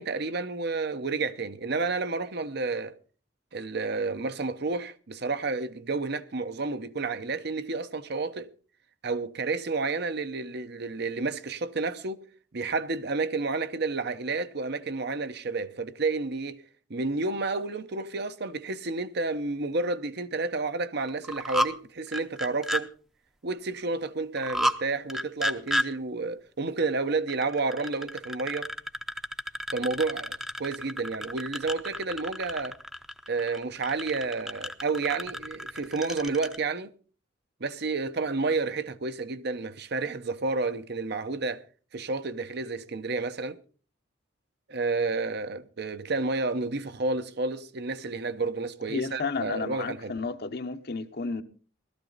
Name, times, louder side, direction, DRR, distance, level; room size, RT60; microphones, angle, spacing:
voice 1, 0.0-3.0 3.5-8.5 9.0-12.3 12.5-16.6 16.9-22.9 23.4-28.8 29.7-32.8 33.3-36.9 37.6-41.6 41.9-43.6 44.7-50.1, right 3 dB, 60° right, 0.9 m, -30 dB
sound 1, 21.1-21.7 22.1-22.8 24.4-24.8 25.1-25.9 27.3-36.6, equal, ahead, 0.7 m, -32 dB
voice 2, 48.9-51.4, left 4 dB, 55° left, 0.9 m, -32 dB
17.5 x 13.0 x 4.0 m
head